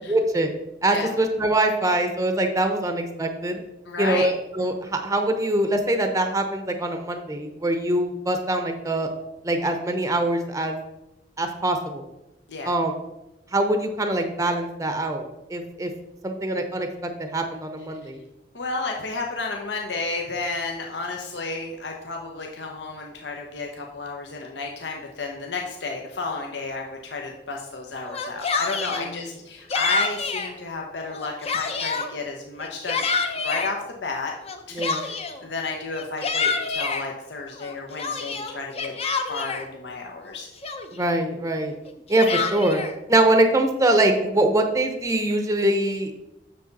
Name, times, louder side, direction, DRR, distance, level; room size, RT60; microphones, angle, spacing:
voice 1, 0.1-0.5 0.8-3.6 4.0-9.1 9.4-10.8 11.4-12.1 12.6-12.9 13.5-15.9 16.2-18.2 28.9-29.2 34.7-35.1 40.9-41.7 42.1-42.8 43.1-46.2, right 1 dB, 20° right, 6 dB, 0.7 m, -23 dB
voice 2, 3.8-4.3 12.5-12.7 18.0-18.1 18.5-33.0 33.3-34.3 34.7-38.9 39.3-40.5, left 3 dB, 75° left, 1 dB, 0.9 m, -32 dB
Yell, 28.0-29.1 29.7-30.5 31.0-32.1 32.6-33.7 34.4-35.4 35.9-37.0 37.6-39.7 40.2-40.3 40.6-41.1 41.9-42.9, left 4 dB, 35° left, 0.7 m, -27 dB
7.5 x 6.7 x 4.0 m, 0.91 s
head